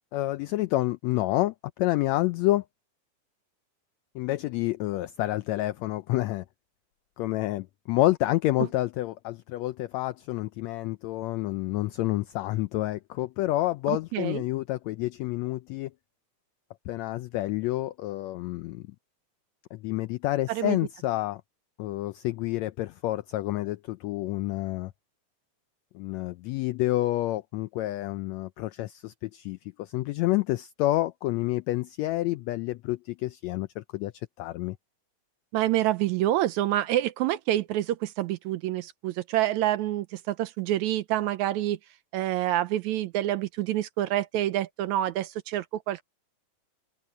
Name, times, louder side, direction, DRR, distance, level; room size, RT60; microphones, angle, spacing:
voice 1, 0.1-2.6 4.1-6.4 7.2-15.9 16.9-18.8 19.7-21.4 21.8-24.9 25.9-34.1 34.4-34.8, left 16 dB, 85° left, 1.5 m, -29 dB
voice 2, 13.9-14.4 20.5-20.8 35.5-41.8 42.1-46.0, right 13 dB, 80° right, 1.8 m, -27 dB
open air
omnidirectional pair, 3.7 m